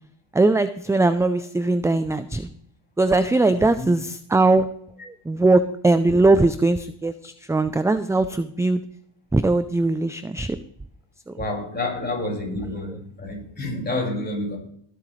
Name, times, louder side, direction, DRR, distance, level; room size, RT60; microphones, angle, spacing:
voice 1, 0.3-2.5 3.0-4.7 5.1-8.8 9.3-10.6 11.3-11.4, right 2 dB, 5° right, 0.4 m, -20 dB
voice 2, 11.3-14.6, left 2 dB, 20° left, 5.3 m, -29 dB
20.0 x 7.8 x 3.2 m
cardioid pair, 115°, 50 cm